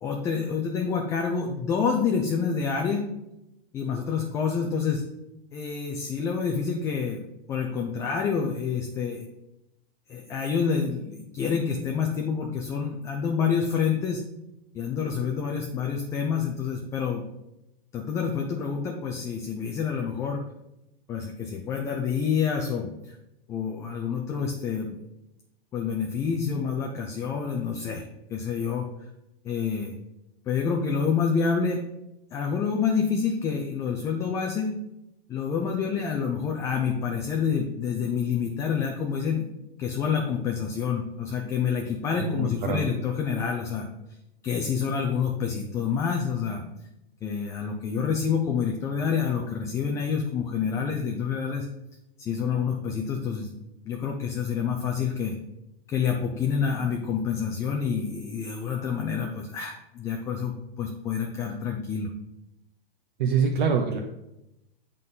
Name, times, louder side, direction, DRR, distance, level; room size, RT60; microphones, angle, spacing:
voice 1, 0.0-3.1 3.7-5.0 5.5-7.2 7.5-9.3 10.1-14.2 14.7-17.2 17.9-20.4 21.1-23.2 23.5-25.0 25.7-28.9 29.4-29.9 30.5-31.8 32.3-34.7 35.3-39.5 39.8-43.9 44.4-46.6 47.2-51.7 52.2-53.5 53.9-55.3 55.9-62.1, left 6 dB, 10° left, 2 dB, 0.3 m, -28 dB
voice 2, 42.2-42.9 63.2-64.0, right 5 dB, 55° right, 2 dB, 0.9 m, -25 dB
7.7 x 4.0 x 5.4 m, 0.89 s
hypercardioid pair, 140°, 29 cm